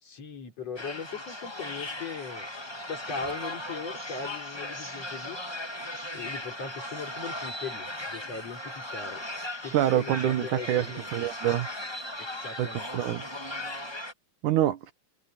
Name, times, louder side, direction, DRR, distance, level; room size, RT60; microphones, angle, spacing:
voice 1, 0.0-2.5 2.9-5.4 6.1-9.2 9.6-11.2 12.2-13.0, left 5 dB, 55° left, 5.3 m, -39 dB
sound 1, 0.8-14.1, left 1 dB, 10° left, 1.4 m, -37 dB
voice 2, 9.7-10.9 11.1-11.7 12.6-12.7 12.9-13.2 14.4-14.9, right 12 dB, 85° right, 2.7 m, -25 dB
omnidirectional pair, 3.4 m